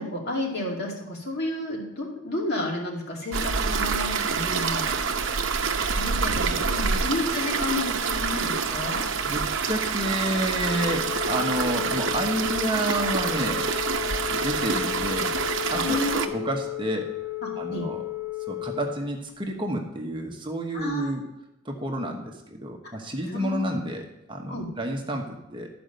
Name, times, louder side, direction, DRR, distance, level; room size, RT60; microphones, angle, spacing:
voice 1, 0.0-4.9 5.9-9.0 15.8-16.2 17.4-17.8 20.7-21.1 23.3-23.8 24.5-24.7, left 2 dB, 50° left, -2 dB, 2.5 m, -31 dB
sound 1, 3.3-16.3, right 5 dB, 60° right, 0.8 m, -27 dB
voice 2, 9.2-13.7 14.3-15.3 15.7-17.1 17.6-18.0 18.5-21.2 21.6-25.7, right 1 dB, 25° right, 1 dB, 1.1 m, -30 dB
Telephone, 10.6-19.0, left 19 dB, 85° left, 0.6 m, -34 dB
13.0 x 5.1 x 6.6 m, 0.87 s
head